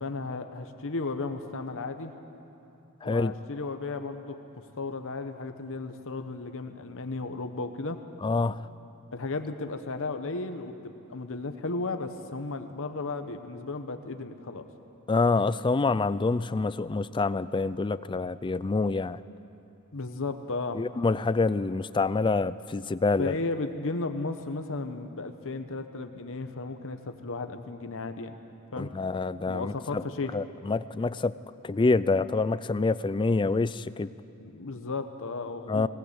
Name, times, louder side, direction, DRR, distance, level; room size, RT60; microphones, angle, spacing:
voice 1, 0.0-2.1 3.0-8.0 9.1-14.7 19.9-20.8 23.2-28.4 28.7-28.9 29.5-30.4 34.4-35.9, left 3 dB, 65° left, 8 dB, 1.0 m, -34 dB
voice 2, 3.0-3.3 8.2-8.7 15.1-19.2 20.7-23.4 28.8-30.0 30.3-31.3 31.6-34.1 35.7-35.9, left 3 dB, 20° left, 16 dB, 0.4 m, -26 dB
19.0 x 18.5 x 8.1 m, 2.8 s
head